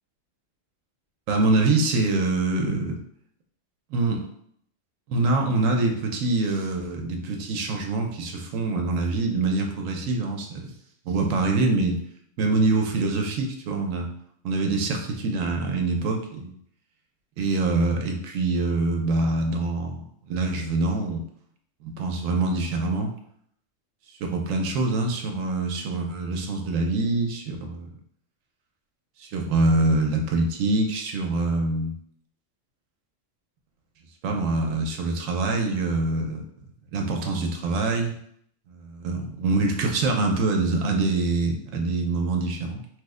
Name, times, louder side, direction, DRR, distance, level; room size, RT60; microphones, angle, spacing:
voice 1, 1.3-3.0 3.9-4.3 5.1-10.7 11.1-12.0 12.4-14.1 14.4-16.5 17.4-21.2 21.8-23.1 24.2-27.9 29.2-32.0 34.2-36.4 36.9-38.1 38.7-42.8, right 2 dB, 80° right, 3 dB, 0.9 m, -25 dB
3.0 x 2.1 x 3.5 m, 0.67 s
omnidirectional pair, 1.3 m